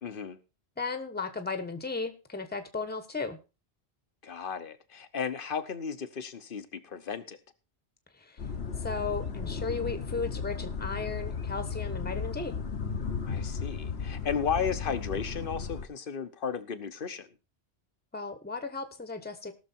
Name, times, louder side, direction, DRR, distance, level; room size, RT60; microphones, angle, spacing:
voice 1, 0.0-0.4 4.2-7.4 13.3-17.3, left 6 dB, 55° left, 1.1 m, -34 dB
voice 2, 0.8-3.4 8.2-8.4 8.8-12.5 18.1-19.5, left 4 dB, 10° left, 1.2 m, -35 dB
sound 1, 8.4-15.8, left 5 dB, 75° left, 1.5 m, -35 dB
17.5 x 6.5 x 4.4 m
omnidirectional pair, 1.1 m